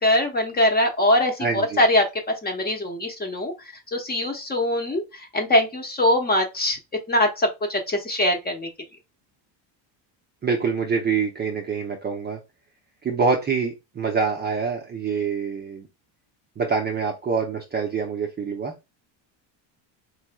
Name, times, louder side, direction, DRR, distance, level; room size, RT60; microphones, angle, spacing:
voice 1, 0.0-2.1 2.4-3.5 3.9-5.0 5.3-6.8 7.1-8.7, left 1 dB, 20° left, 0.9 m, -22 dB
voice 2, 1.4-1.8 10.4-12.4 13.0-15.9 16.6-18.7, right 5 dB, 20° right, 0.5 m, -25 dB
4.6 x 3.0 x 2.2 m
cardioid pair, 130°, 48 cm